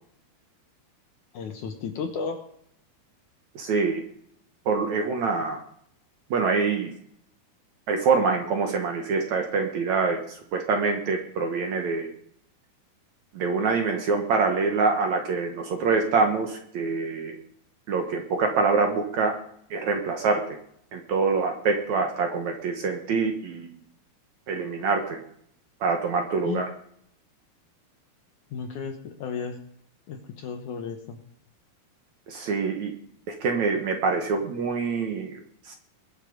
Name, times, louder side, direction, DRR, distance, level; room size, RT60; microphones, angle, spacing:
voice 1, 1.3-2.4 26.5-26.6 28.5-29.6 30.1-31.2, left 6 dB, 65° left, 5 dB, 2.2 m, -33 dB
voice 2, 3.6-4.0 4.7-5.6 6.3-6.9 7.9-12.1 13.3-17.4 17.9-19.3 19.7-20.6 20.9-23.7 24.5-25.2 25.8-26.7 32.3-32.9 33.3-35.3 35.6-35.7, right 4 dB, 60° right, 4 dB, 2.2 m, -25 dB
21.5 x 7.6 x 5.2 m, 0.68 s
omnidirectional pair, 4.5 m